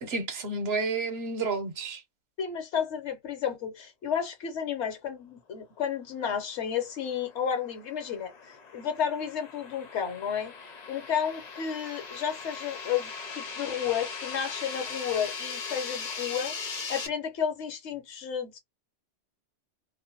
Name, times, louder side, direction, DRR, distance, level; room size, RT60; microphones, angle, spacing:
voice 1, 0.0-2.0, right 3 dB, 65° right, 0.9 m, -31 dB
voice 2, 2.4-10.5 10.9-18.6, left 8 dB, 75° left, 1.0 m, -32 dB
sound 1, 6.6-17.1, left 5 dB, 50° left, 0.6 m, -39 dB
2.5 x 2.1 x 2.7 m
omnidirectional pair, 1.2 m